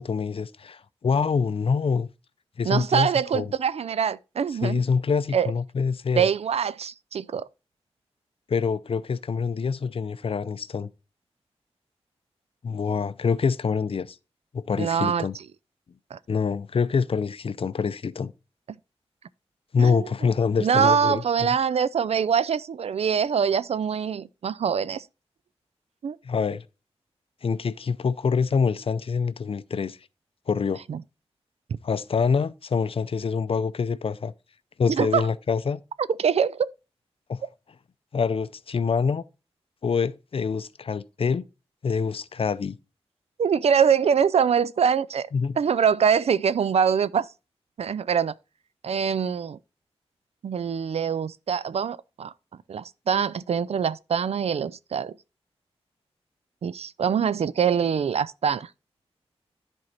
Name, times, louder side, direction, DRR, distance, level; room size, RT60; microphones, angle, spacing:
voice 1, 0.0-2.1 2.6-3.1 3.3-3.5 4.6-6.3 8.5-10.9 12.6-14.2 14.5-15.4 16.3-18.3 19.7-21.6 26.2-26.6 27.4-30.0 30.5-30.8 31.8-34.3 34.8-35.8 37.3-37.4 38.1-39.2 39.8-41.5 41.8-42.8 45.3-45.6, left 5 dB, 60° left, 0.5 m, -25 dB
voice 2, 2.7-4.8 5.3-5.5 6.2-7.5 14.8-15.2 16.1-16.2 19.8-20.1 20.6-25.0 26.0-26.2 30.9-31.0 34.9-35.2 36.2-36.7 43.4-45.3 45.6-47.3 47.8-48.3 48.8-49.6 50.4-52.3 52.7-55.1 56.6-58.7, right 7 dB, 75° right, 0.4 m, -24 dB
10.5 x 4.5 x 4.0 m
wide cardioid pair, 75°, 11 cm